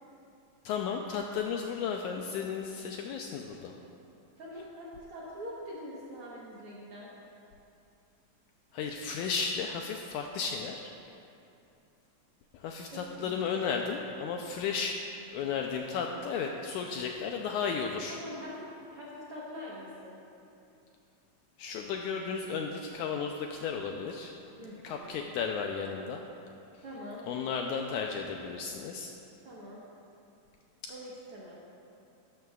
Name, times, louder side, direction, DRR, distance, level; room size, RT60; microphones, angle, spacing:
voice 1, 0.7-3.8 8.7-10.9 12.5-15.0 15.3-18.2 21.6-24.3 24.6-26.2 26.7-26.8 27.3-29.1 30.8-30.9, left 6 dB, 80° left, 2 dB, 1.8 m, -34 dB
voice 2, 4.4-7.1 12.9-13.4 18.1-20.2 24.6-25.1 26.8-27.3 29.4-29.8 30.9-31.6, equal, 65° right, -6 dB, 1.5 m, -44 dB
12.5 x 12.0 x 2.3 m, 2.7 s
omnidirectional pair, 3.9 m